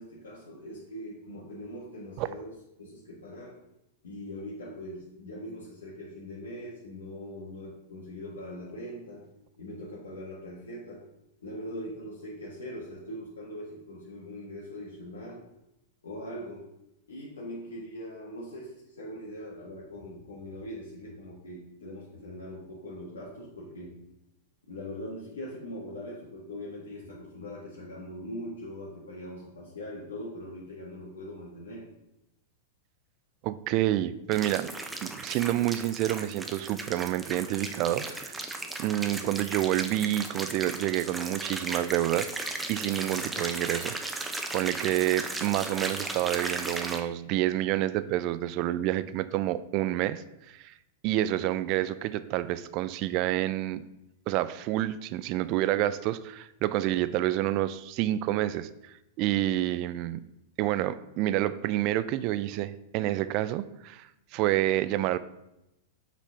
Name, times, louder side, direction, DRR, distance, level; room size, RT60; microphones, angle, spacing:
voice 1, 0.0-3.6 4.0-9.3 9.6-11.0 11.4-15.4 16.0-16.7 17.1-24.0 24.7-31.9 39.1-39.3 51.1-51.4, equal, 90° left, -6 dB, 1.6 m, -41 dB
voice 2, 33.4-34.7 35.0-42.3 42.7-44.1 44.5-50.7 51.0-53.8 54.3-60.2 60.6-65.2, right 14 dB, 45° right, 14 dB, 0.4 m, -28 dB
sound 1, 34.3-47.0, right 2 dB, 10° right, 0.8 m, -36 dB
6.0 x 4.2 x 5.7 m, 0.88 s
hypercardioid pair, 115°, 0 cm